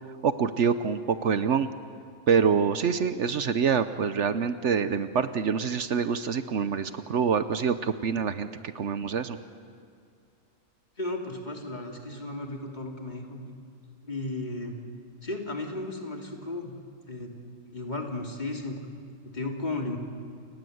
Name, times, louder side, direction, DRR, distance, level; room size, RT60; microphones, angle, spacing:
voice 1, 0.2-1.7 2.3-8.5 8.7-9.4, right 6 dB, 65° right, 11 dB, 1.1 m, -26 dB
voice 2, 11.0-13.4 14.0-14.8 15.2-16.7 17.1-17.3 17.6-18.9 19.2-20.0, left 2 dB, 35° left, 1 dB, 2.9 m, -34 dB
29.0 x 19.5 x 7.9 m, 2.4 s
omnidirectional pair, 1.4 m